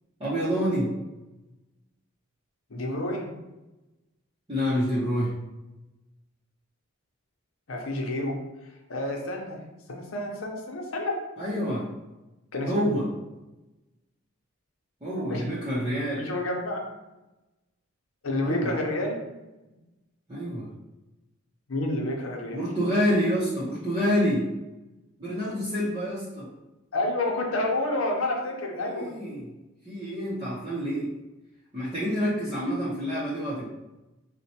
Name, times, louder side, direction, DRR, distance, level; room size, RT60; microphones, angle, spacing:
voice 1, 0.2-0.9 4.5-5.3 11.4-11.8 12.7-13.1 15.0-16.2 18.4-18.8 20.3-20.7 22.5-24.4 25.2-26.5 28.8-29.5 29.9-31.1 31.7-33.7, equal, 25° right, -10 dB, 0.7 m, -27 dB
voice 2, 2.7-3.3 7.7-8.4 8.9-9.6 9.9-11.2 12.5-12.9 15.1-15.4 16.2-16.8 18.2-19.2 21.7-22.6 26.9-29.1, left 1 dB, 75° left, 0 dB, 0.7 m, -29 dB
4.2 x 2.2 x 2.8 m, 1.0 s
head